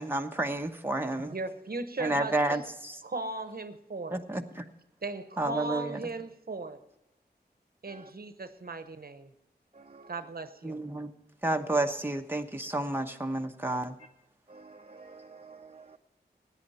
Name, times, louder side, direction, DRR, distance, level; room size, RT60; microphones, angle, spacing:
voice 1, 0.0-1.3 2.0-3.0 4.1-4.6 5.4-6.0 10.6-11.1 11.4-14.0, right 2 dB, 10° right, 4 dB, 1.0 m, -31 dB
voice 2, 1.3-2.7 3.0-4.2 5.0-6.8 7.8-9.3 10.1-10.8, right 3 dB, 60° right, 10 dB, 1.0 m, -37 dB
voice 3, 9.7-10.2 14.5-16.0, right 4 dB, 40° right, 3 dB, 0.7 m, -51 dB
16.5 x 9.7 x 4.3 m, 0.89 s
wide cardioid pair, 70°, 17 cm